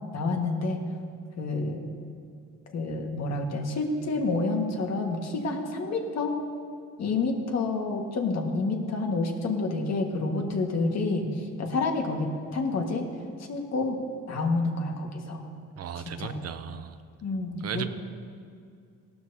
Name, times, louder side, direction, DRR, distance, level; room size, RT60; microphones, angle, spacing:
voice 1, 0.1-0.8 1.4-1.9 2.7-6.3 7.0-13.1 13.4-14.0 14.3-15.5 16.2-16.3 17.2-17.9, left 3 dB, 60° left, 2 dB, 1.7 m, -29 dB
voice 2, 15.8-17.0 17.6-17.8, right 9 dB, 55° right, 10 dB, 0.6 m, -35 dB
17.0 x 12.5 x 2.8 m, 2.3 s
cardioid pair, 90°, 30 cm